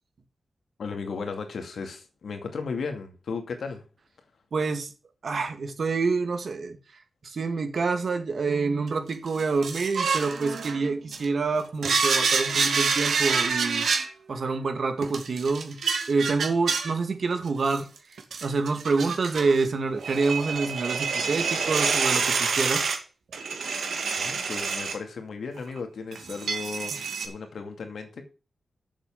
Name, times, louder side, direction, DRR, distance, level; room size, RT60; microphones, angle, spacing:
voice 1, 0.8-3.8 24.2-26.9 27.2-28.2, left 5 dB, 80° left, 2.3 m, -35 dB
voice 2, 4.5-4.9 5.2-6.8 7.2-13.9 14.3-15.8 16.1-17.9 18.4-22.9, right 4 dB, 55° right, 2.0 m, -27 dB
sound 1, 8.5-11.2 11.8-14.1 15.0-16.9 17.7-19.6 19.9-23.0 23.3-24.9 25.6-25.8 26.1-27.3, right 5 dB, 90° right, 2.3 m, -27 dB
7.4 x 7.4 x 7.4 m
wide cardioid pair, 120°, 0 cm